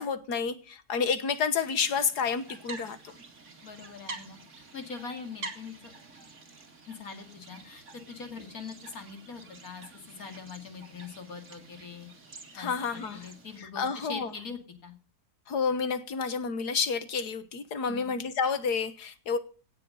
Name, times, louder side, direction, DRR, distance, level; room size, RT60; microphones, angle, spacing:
voice 1, 0.0-3.1 12.5-13.3 13.6-14.3 15.5-19.4, left 5 dB, 80° left, 1.9 m, -30 dB
sound 1, 1.6-13.6, right 3 dB, 45° right, 2.5 m, -48 dB
voice 2, 3.6-5.9 6.9-12.1 12.6-14.9 17.9-18.1, left 5 dB, 60° left, 2.7 m, -43 dB
17.5 x 7.6 x 6.4 m
omnidirectional pair, 1.7 m